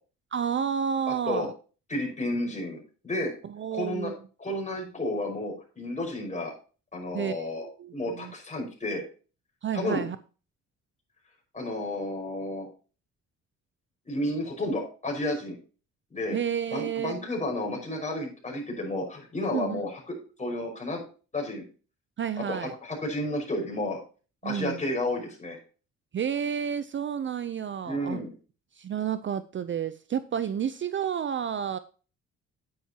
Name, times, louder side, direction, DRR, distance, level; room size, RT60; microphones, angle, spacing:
voice 1, 0.3-1.5 3.4-4.2 7.1-8.3 9.6-10.2 16.3-17.3 19.5-19.8 22.2-22.7 24.4-24.8 26.1-28.2 28.7-31.8, right 8 dB, 40° right, 13 dB, 0.5 m, -31 dB
voice 2, 1.9-3.3 3.7-4.1 4.4-6.5 6.9-9.0 9.7-10.0 11.5-12.7 14.1-15.6 16.1-16.4 16.7-21.0 21.3-21.6 22.5-24.0 24.4-25.6 27.8-28.3, left 1 dB, 25° left, 1 dB, 5.5 m, -31 dB
10.5 x 9.0 x 2.9 m, 0.36 s
cardioid pair, 90°, 30 cm